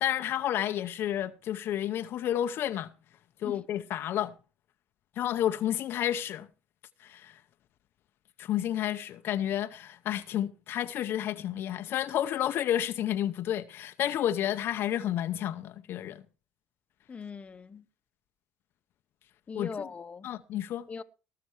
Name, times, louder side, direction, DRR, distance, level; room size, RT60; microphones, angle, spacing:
voice 1, 0.0-2.9 3.4-4.3 5.2-6.5 7.0-7.3 8.4-16.2 19.5-19.9 20.2-20.9, left 11 dB, 60° left, 0.7 m, -31 dB
voice 2, 17.1-17.8 19.5-20.3 20.9-21.0, left 5 dB, 30° left, 1.0 m, -40 dB
18.5 x 6.8 x 4.6 m
supercardioid pair, 85°, 4 cm